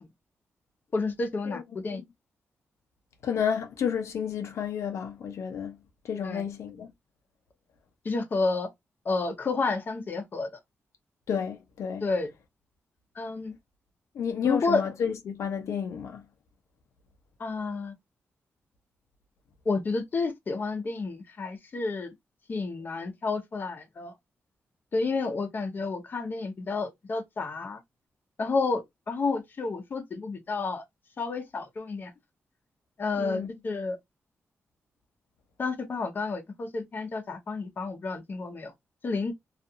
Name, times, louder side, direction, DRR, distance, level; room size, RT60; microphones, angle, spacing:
voice 1, 0.9-2.0 6.2-6.4 8.0-8.7 9.1-10.5 12.0-12.3 13.2-13.5 14.4-14.8 17.4-17.9 19.7-22.1 22.5-24.1 24.9-27.8 28.4-30.8 31.2-32.1 33.0-34.0 35.6-38.7 39.0-39.3, left 3 dB, 40° left, 0.7 m, -30 dB
voice 2, 1.5-2.0 3.2-5.8 6.0-6.9 11.3-12.1 14.1-16.2 33.2-33.5, left 7 dB, 85° left, 0.5 m, -31 dB
2.4 x 2.4 x 2.6 m
wide cardioid pair, 125°, 5 cm